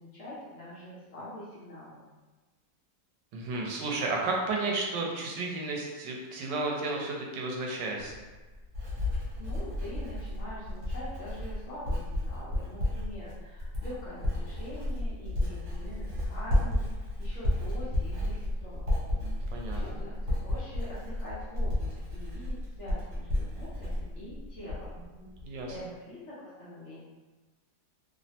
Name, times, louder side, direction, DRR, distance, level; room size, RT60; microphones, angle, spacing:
voice 1, 0.0-2.0 9.4-16.9 17.2-18.9 19.4-24.9 25.7-27.0, left 1 dB, 55° left, -9 dB, 0.8 m, -44 dB
voice 2, 3.3-8.1 19.2-20.0 25.2-25.7, right 3 dB, 85° right, -1 dB, 1.2 m, -33 dB
Writing, 8.1-25.1 25.3-25.8, left 1 dB, 65° right, 1.4 m, -32 dB
3.1 x 2.0 x 2.7 m, 1.2 s
omnidirectional pair, 1.9 m